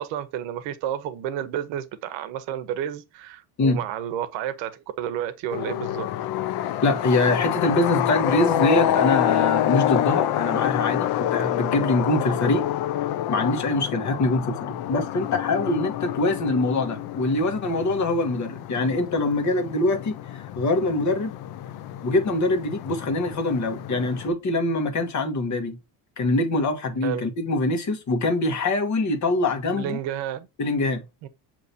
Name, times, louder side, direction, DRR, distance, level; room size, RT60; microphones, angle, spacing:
voice 1, 0.0-6.1 27.0-27.2 29.7-30.5 31.2-31.3, right 10 dB, 80° right, 0.8 m, -31 dB
sound 1, 5.5-24.3, left 12 dB, 60° left, 0.6 m, -27 dB
voice 2, 6.8-12.6 13.3-21.3 22.0-25.8 26.2-30.0 30.6-31.0, left 2 dB, 40° left, 1.2 m, -24 dB
6.6 x 2.9 x 2.7 m
cardioid pair, 110°, 44 cm